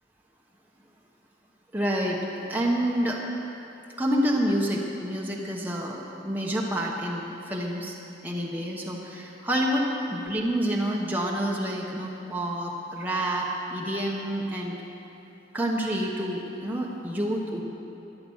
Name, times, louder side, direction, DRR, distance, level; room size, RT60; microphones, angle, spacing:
voice 1, 1.7-2.2 2.5-3.2 4.0-8.0 8.2-14.8 15.5-17.6, equal, 10° right, -3 dB, 1.1 m, -28 dB
13.5 x 11.0 x 7.2 m, 2.9 s
head